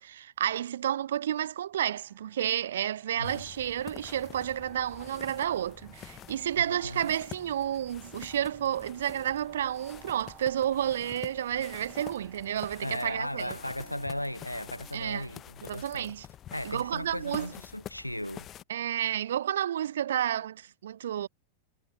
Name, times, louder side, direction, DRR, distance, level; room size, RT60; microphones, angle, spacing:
voice 1, 0.0-13.6 14.9-15.3 15.7-16.3 16.6-17.5 18.7-21.3, right 10 dB, 60° right, 0.6 m, -31 dB
sound 1, 1.8-15.9, right 11 dB, 30° right, 7.2 m, -57 dB
sound 2, 3.2-18.6, left 11 dB, 30° left, 0.6 m, -48 dB
voice 2, 6.5-7.1 12.8-16.1 16.5-18.5, left 1 dB, 90° left, 0.5 m, -37 dB
figure-of-eight pair, 90°, 0 cm